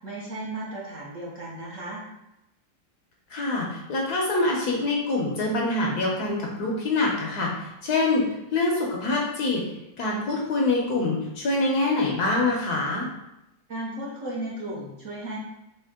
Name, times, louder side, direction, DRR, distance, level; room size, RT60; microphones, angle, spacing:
voice 1, 0.0-2.0 13.7-15.4, right 1 dB, 50° right, -6 dB, 1.0 m, -35 dB
voice 2, 3.3-9.7 10.0-13.1, left 2 dB, 65° left, -1 dB, 1.1 m, -25 dB
4.5 x 3.0 x 3.5 m, 0.89 s
omnidirectional pair, 2.1 m